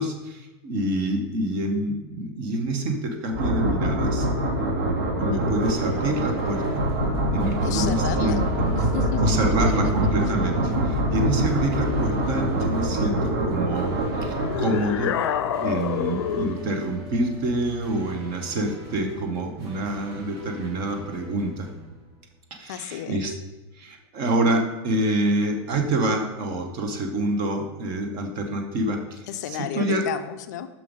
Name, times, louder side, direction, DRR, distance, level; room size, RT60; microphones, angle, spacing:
voice 1, 0.0-4.3 5.2-6.8 7.3-8.4 9.2-15.1 15.6-21.7 22.5-23.3 23.7-30.0, right 1 dB, 25° right, 4 dB, 0.8 m, -27 dB
sound 1, 3.3-15.0, right 1 dB, 55° right, 1.6 m, -24 dB
sound 2, 5.6-22.6, right 1 dB, 90° right, 2.2 m, -42 dB
voice 2, 7.6-8.4 8.7-9.9 22.7-23.2 29.3-30.7, left 10 dB, 40° left, 10 dB, 0.5 m, -32 dB
sound 3, 14.4-16.7, left 9 dB, 85° left, 0.6 m, -27 dB
6.0 x 5.6 x 5.0 m, 1.1 s
supercardioid pair, 180°, 14 cm